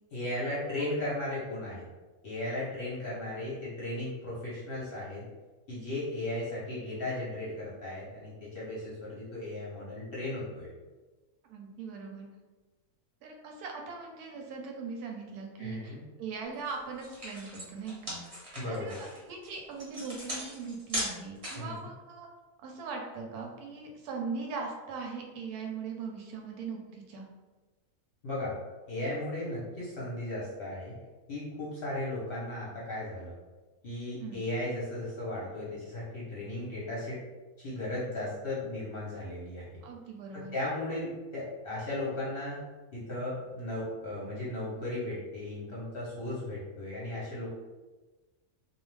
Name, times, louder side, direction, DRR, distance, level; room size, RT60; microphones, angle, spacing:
voice 1, 0.1-1.8 2.2-5.3 5.7-10.7 15.6-16.0 18.6-19.0 21.5-21.9 28.2-28.6 28.9-30.9 31.3-33.4 33.8-37.2 37.6-39.8 40.3-42.6 42.9-47.5, left 1 dB, 50° left, -7 dB, 0.7 m, -36 dB
voice 2, 11.5-12.3 13.2-18.2 18.6-22.3 22.6-27.3 34.2-34.4 39.8-40.5, right 5 dB, 85° right, 1 dB, 1.1 m, -40 dB
sound 1, 16.6-16.7 17.0-21.8, equal, 30° right, 0.7 m, -38 dB
2.4 x 2.3 x 3.1 m, 1.2 s
omnidirectional pair, 1.6 m